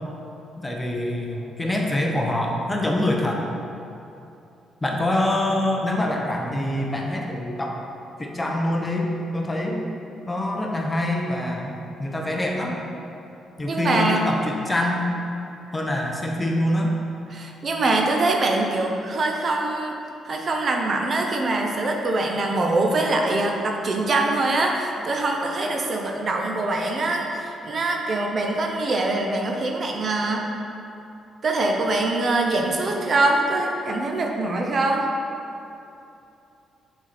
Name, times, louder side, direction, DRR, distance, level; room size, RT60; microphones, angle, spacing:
voice 1, 0.6-3.4 4.8-7.8 8.2-9.8 10.3-12.8 13.6-15.0 15.7-16.9, left 1 dB, 15° left, 0 dB, 0.9 m, -25 dB
voice 2, 13.7-14.3 17.3-20.0 20.2-30.5 31.4-35.1, right 2 dB, 45° right, 1 dB, 0.7 m, -23 dB
7.0 x 4.4 x 4.3 m, 2.8 s
cardioid pair, 90°, 0 cm